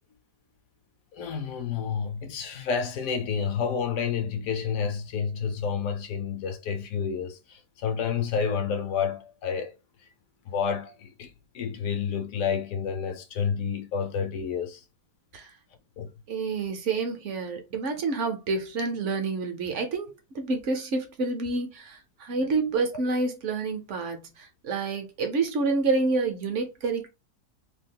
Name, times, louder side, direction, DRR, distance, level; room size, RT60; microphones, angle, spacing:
voice 1, 1.1-9.7 10.5-14.8 16.0-16.1, left 6 dB, 65° left, 0.9 m, -29 dB
voice 2, 16.3-27.1, right 3 dB, 60° right, 0.8 m, -28 dB
2.8 x 2.3 x 3.6 m
omnidirectional pair, 1.7 m